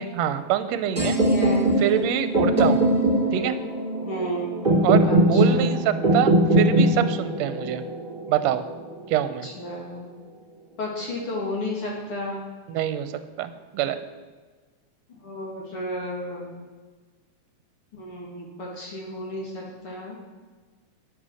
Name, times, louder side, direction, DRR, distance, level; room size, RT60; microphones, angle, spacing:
voice 1, 0.0-1.2 1.8-2.9 3.3-3.6 4.8-7.8 8.3-8.6 9.1-9.5 12.7-13.1 13.4-14.0, right 10 dB, 75° right, 11 dB, 1.9 m, -25 dB
voice 2, 1.0-1.7 4.0-4.5 5.0-5.7 9.4-10.1 10.8-12.4 15.2-16.5 17.9-20.2, left 1 dB, 50° left, -3 dB, 3.0 m, -32 dB
sound 1, 1.0-8.9, right 1 dB, 15° right, 4.3 m, -21 dB
10.0 x 9.4 x 6.4 m, 1.4 s
omnidirectional pair, 3.3 m